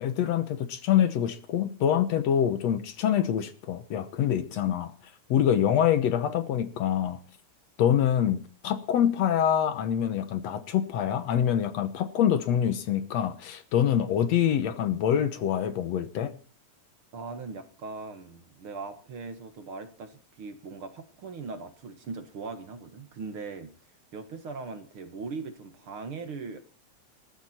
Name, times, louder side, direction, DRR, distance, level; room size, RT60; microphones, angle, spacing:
voice 1, 0.0-4.9 5.3-7.2 7.8-16.3, left 9 dB, 65° left, 2.1 m, -25 dB
voice 2, 17.1-23.7 24.1-26.6, right 4 dB, 50° right, 2.1 m, -40 dB
20.5 x 14.0 x 4.3 m
omnidirectional pair, 3.4 m